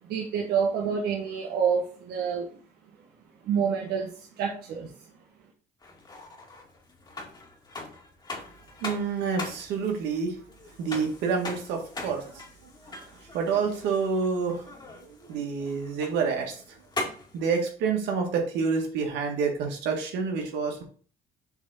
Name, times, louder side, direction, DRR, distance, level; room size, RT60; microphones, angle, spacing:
voice 1, 0.1-2.5 3.4-4.1 4.4-4.9, right 6 dB, 70° right, 0 dB, 1.2 m, -27 dB
sound 1, 5.8-17.4, left 2 dB, 25° left, 1.9 m, -41 dB
voice 2, 8.8-10.4 10.8-16.8 17.3-20.8, right 5 dB, 85° right, 2 dB, 1.7 m, -28 dB
7.0 x 3.5 x 4.2 m, 0.42 s
cardioid pair, 110°, 17 cm